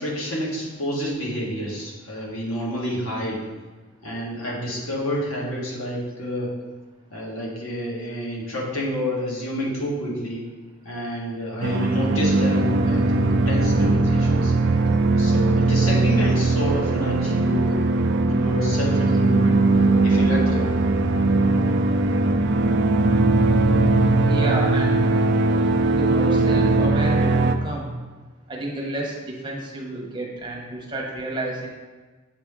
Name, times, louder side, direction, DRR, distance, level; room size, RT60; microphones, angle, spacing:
voice 1, 0.0-3.5 4.0-6.5 7.1-10.4 10.9-14.5 15.2-17.8 18.3-19.6 20.0-20.7, equal, 85° left, -4 dB, 1.7 m, -29 dB
sound 1, 11.6-27.6, right 2 dB, 55° right, 0.4 m, -19 dB
voice 2, 24.3-25.1 25.9-28.0 28.5-31.7, right 1 dB, 25° right, -2 dB, 1.1 m, -30 dB
7.5 x 4.4 x 3.7 m, 1.3 s
head